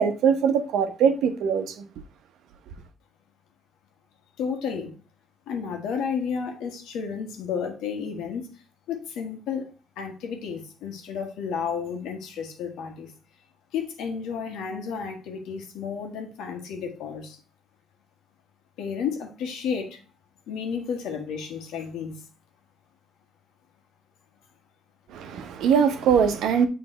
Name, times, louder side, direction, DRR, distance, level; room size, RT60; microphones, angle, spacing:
voice 1, 0.0-1.9 25.1-26.7, right 7 dB, 80° right, 0.9 m, -22 dB
voice 2, 4.4-5.0 5.5-8.5 8.9-13.1 13.7-17.4 18.8-20.0 20.5-22.2, left 6 dB, 90° left, 1.4 m, -32 dB
6.7 x 3.4 x 4.3 m
cardioid pair, 105°, 0 cm